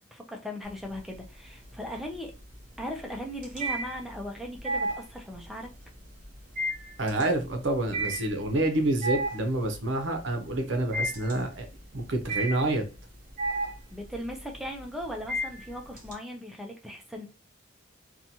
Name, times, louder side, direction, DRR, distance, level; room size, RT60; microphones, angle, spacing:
voice 1, 0.1-2.3 2.8-5.7 13.9-17.3, equal, ahead, 0.4 m, -38 dB
sound 1, 0.6-1.3 1.6-16.1, right 1 dB, 45° right, 0.8 m, -34 dB
voice 2, 7.0-11.7 11.9-12.8, right 2 dB, 75° right, 0.6 m, -28 dB
2.8 x 2.2 x 2.6 m
head